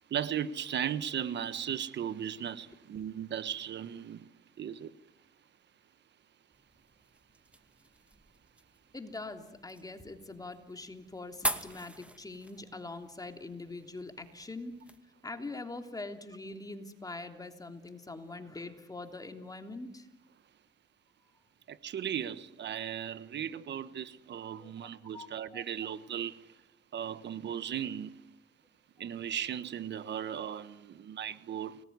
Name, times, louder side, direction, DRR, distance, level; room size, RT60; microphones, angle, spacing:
voice 1, 0.1-4.3 4.6-4.9 21.7-26.6 26.9-28.2 29.0-31.8, right 9 dB, 60° right, 1.4 m, -37 dB
sound 1, 6.5-15.0, right 1 dB, 5° right, 2.2 m, -43 dB
voice 2, 8.9-14.7 15.2-20.1 24.6-24.7 25.1-25.3 25.5-25.7, left 2 dB, 20° left, 3.2 m, -43 dB
30.0 x 20.0 x 9.6 m
cardioid pair, 90°, 20 cm